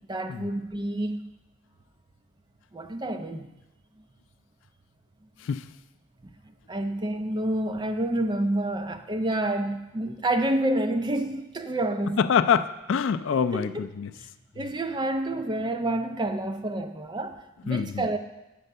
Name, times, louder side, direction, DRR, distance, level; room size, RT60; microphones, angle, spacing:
voice 1, 0.1-1.2 2.7-3.5 6.2-6.3 6.7-12.2 13.5-13.9 14.2-14.3 14.5-18.2, right 1 dB, 20° right, 0.4 m, -28 dB
voice 2, 12.3-14.1 17.7-18.0, left 7 dB, 60° left, 0.3 m, -25 dB
8.5 x 4.4 x 6.6 m
head